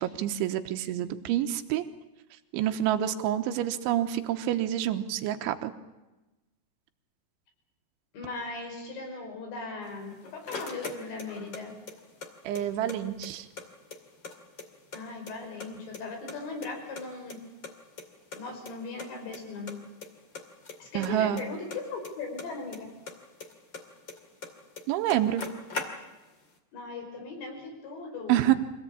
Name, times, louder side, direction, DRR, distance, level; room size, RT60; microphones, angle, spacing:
voice 1, 0.0-1.9 2.5-5.7 12.5-13.5 21.0-21.4 24.9-25.5 28.3-28.6, right 12 dB, 85° right, 7 dB, 3.5 m, -27 dB
voice 2, 8.1-11.7 14.9-17.4 18.3-19.8 20.8-22.9 26.7-28.4, left 3 dB, 70° left, 3 dB, 7.4 m, -38 dB
sound 1, 9.9-11.6 11.9-13.0 13.2-13.3 13.6-15.0 15.3-16.0 16.3-17.7 18.0-18.1 18.3-18.4 18.7-18.8 19.0-19.4 19.7-20.1 20.3-22.8 23.1-24.5 24.8-24.9 25.1-26.3, left 4 dB, 35° left, 2.3 m, -40 dB
25.0 x 17.5 x 8.8 m, 1.1 s
omnidirectional pair, 5.4 m